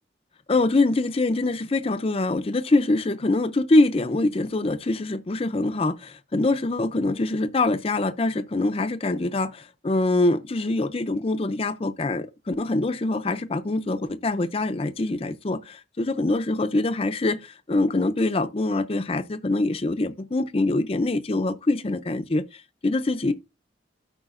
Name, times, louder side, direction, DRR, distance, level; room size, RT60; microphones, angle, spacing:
voice 1, 0.5-23.3, left 2 dB, 30° left, 0.5 m, -24 dB
13.0 x 4.9 x 2.5 m
head